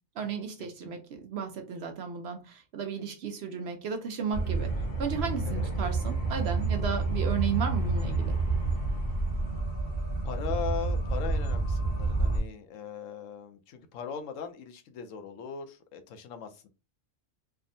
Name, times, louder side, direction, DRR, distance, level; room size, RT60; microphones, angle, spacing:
voice 1, 0.2-4.7 5.0-8.4, right 6 dB, 65° right, 0.7 m, -34 dB
sound 1, 4.3-12.4, right 3 dB, 50° left, 1.0 m, -29 dB
voice 2, 10.2-16.7, left 7 dB, 80° left, 0.9 m, -39 dB
3.4 x 2.1 x 2.5 m
omnidirectional pair, 1.4 m